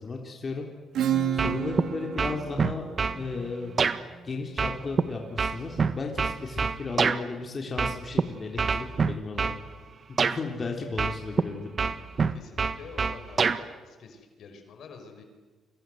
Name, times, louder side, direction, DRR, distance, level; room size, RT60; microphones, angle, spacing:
voice 1, 0.0-0.6 1.3-2.9 3.1-3.7 4.2-9.6 10.2-11.7, left 4 dB, 35° left, 1 dB, 3.8 m, -34 dB
Acoustic guitar / Strum, 0.9-6.3, right 9 dB, 75° right, 3.1 m, -33 dB
sound 1, 1.4-1.9 2.2-3.2 3.8-4.0 4.6-7.2 7.8-8.2 8.6-9.6 10.2-10.4 11.0-11.5 11.8-13.6, right 5 dB, 45° right, 1.5 m, -25 dB
voice 2, 9.3-10.0 12.3-15.2, left 5 dB, 70° left, 5 dB, 5.7 m, -48 dB
30.0 x 24.5 x 8.0 m, 1.4 s
cardioid pair, 90°, 0 cm